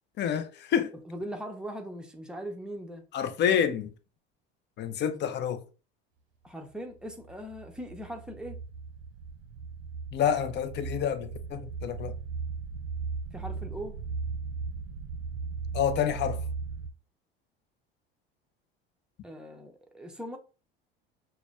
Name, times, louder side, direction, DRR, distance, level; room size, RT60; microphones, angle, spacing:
voice 1, 0.2-0.9 3.1-3.9 4.8-5.6 10.1-12.2 15.7-16.4, left 8 dB, 35° left, 0.5 m, -28 dB
voice 2, 1.0-3.0 5.1-5.2 6.4-8.6 13.3-14.0 19.2-20.4, equal, 5° right, 0.8 m, -40 dB
sound 1, 7.0-16.9, right 5 dB, 75° right, 0.6 m, -37 dB
5.9 x 2.2 x 2.3 m
hypercardioid pair, 70°, 29 cm